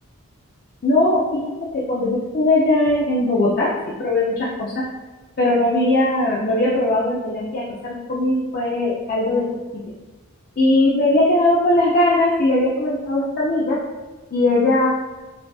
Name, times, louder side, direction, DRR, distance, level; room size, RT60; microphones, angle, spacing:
voice 1, 0.8-4.8 5.4-9.5 10.6-13.8 14.3-14.9, left 2 dB, 40° left, -6 dB, 0.5 m, -19 dB
5.0 x 2.5 x 2.3 m, 1.2 s
head